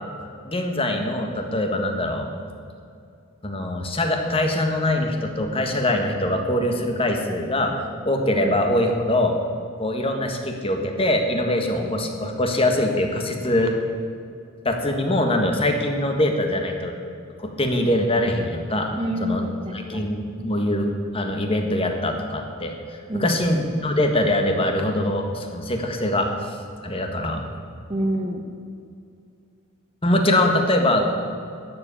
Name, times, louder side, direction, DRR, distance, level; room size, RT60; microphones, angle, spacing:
voice 1, 0.4-2.3 3.4-9.4 9.8-13.7 14.6-16.9 17.4-18.9 19.2-19.4 19.9-26.6 26.8-27.5 30.0-31.1, left 1 dB, 25° left, 4 dB, 1.6 m, -23 dB
voice 2, 18.9-20.1 23.1-23.6 27.9-28.5, equal, 25° right, 3 dB, 1.0 m, -27 dB
13.0 x 7.7 x 10.0 m, 2.4 s
head